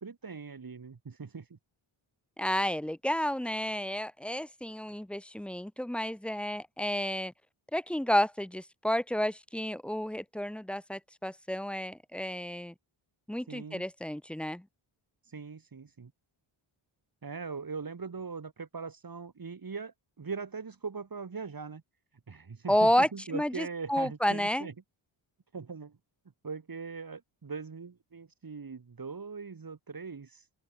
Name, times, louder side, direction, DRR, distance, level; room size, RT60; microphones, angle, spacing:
voice 1, 0.0-1.6 13.5-13.8 15.3-16.1 17.2-21.8 22.3-24.7 25.5-26.0 26.4-30.4, right 5 dB, 45° right, 4.6 m, -41 dB
voice 2, 2.4-7.3 7.7-12.7 13.3-14.6 22.7-24.7, equal, ahead, 0.4 m, -31 dB
open air
wide cardioid pair, 100°, 50 cm